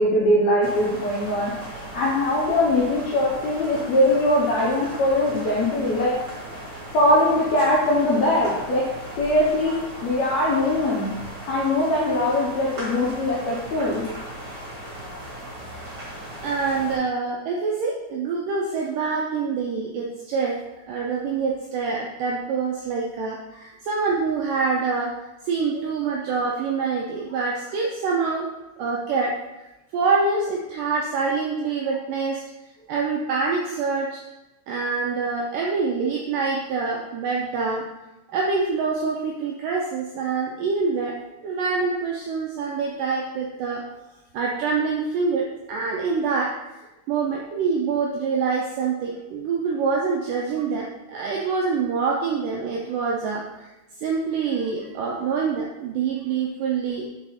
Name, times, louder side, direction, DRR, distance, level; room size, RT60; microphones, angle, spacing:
voice 1, 0.0-1.5 1.9-6.1 6.9-8.8 9.2-9.7 10.0-11.1 11.5-14.0 25.7-25.8, left 1 dB, 75° left, -6 dB, 1.6 m, -21 dB
sound 1, 0.6-17.0, right 1 dB, 40° right, 2.3 m, -38 dB
voice 2, 16.4-20.6 20.9-25.1 25.5-28.5 28.8-29.3 29.9-32.4 32.9-34.2 34.7-37.8 38.3-41.1 41.4-43.8 44.3-46.8 47.1-53.7 54.0-57.1, right 4 dB, 80° right, -2 dB, 1.9 m, -25 dB
5.6 x 4.7 x 4.1 m, 1.0 s
omnidirectional pair, 4.5 m